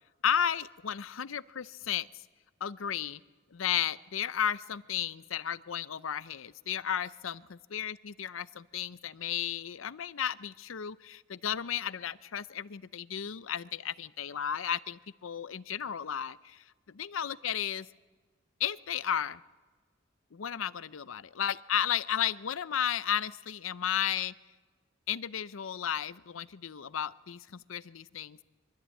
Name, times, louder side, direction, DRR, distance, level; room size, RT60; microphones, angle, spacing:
voice 1, 0.2-2.1 2.6-3.2 3.5-7.4 7.7-17.9 18.6-19.4 20.3-24.3 25.1-28.4, left 9 dB, 75° left, 17 dB, 0.6 m, -33 dB
24.0 x 14.0 x 8.3 m, 1.4 s
head